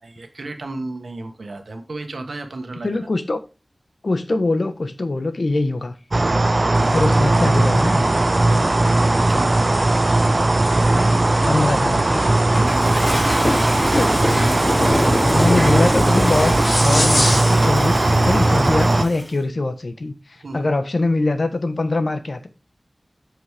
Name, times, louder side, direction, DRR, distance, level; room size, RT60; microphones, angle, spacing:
voice 1, 0.0-2.9 9.1-10.0 12.5-13.1 14.5-15.6 16.9-17.3 20.4-20.7, right 2 dB, 90° right, 1.6 m, -34 dB
voice 2, 2.8-3.4 4.0-6.0 6.9-8.0 11.4-12.3 14.0-14.2 15.3-22.5, left 2 dB, 65° left, 1.3 m, -23 dB
sound 1, 6.1-19.0, right 2 dB, 45° right, 0.6 m, -18 dB
sound 2, 6.7-17.7, left 1 dB, 45° left, 4.9 m, -26 dB
Toilet flush, 12.5-19.3, equal, 5° left, 3.6 m, -28 dB
7.8 x 7.4 x 3.6 m
wide cardioid pair, 65°, 0 cm